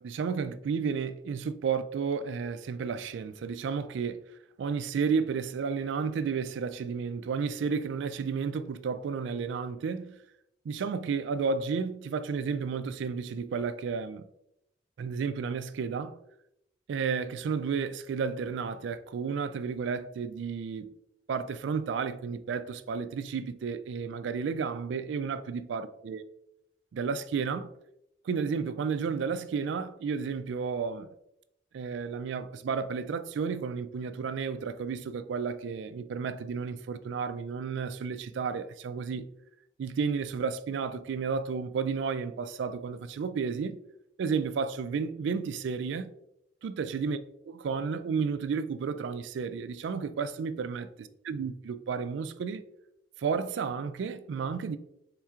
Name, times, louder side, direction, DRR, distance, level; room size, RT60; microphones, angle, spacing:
voice 1, 0.0-4.2 4.6-10.2 10.7-14.2 15.0-16.2 16.9-20.9 21.3-26.2 26.9-27.7 28.2-31.1 31.7-39.3 39.8-43.8 44.2-46.1 46.6-47.2 47.5-52.6 53.2-54.8, right 5 dB, 75° right, 0.3 m, -32 dB
4.3 x 3.6 x 2.4 m
head